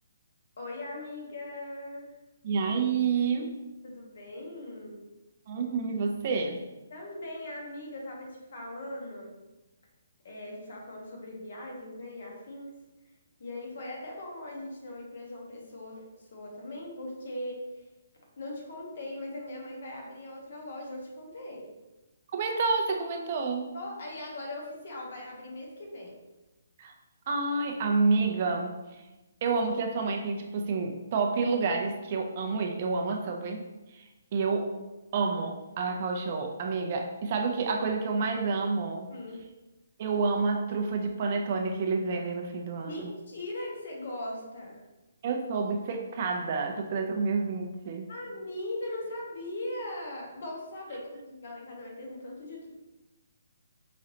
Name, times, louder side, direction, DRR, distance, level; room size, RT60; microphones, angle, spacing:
voice 1, 0.6-2.1 3.8-5.0 6.9-9.3 10.2-12.7 13.4-16.0 16.3-17.8 18.4-21.7 23.7-26.1 39.1-39.4 42.8-44.8 48.1-52.7, left 1 dB, 60° left, -1 dB, 1.3 m, -40 dB
voice 2, 2.4-3.6 5.5-6.6 22.3-23.7 26.8-26.9 27.3-28.7 29.4-33.6 33.9-34.0 34.3-34.8 35.1-39.1 40.0-43.1 45.2-48.1, right 4 dB, 35° right, 2 dB, 0.5 m, -29 dB
4.9 x 3.1 x 2.8 m, 1.1 s
hypercardioid pair, 165°, 0 cm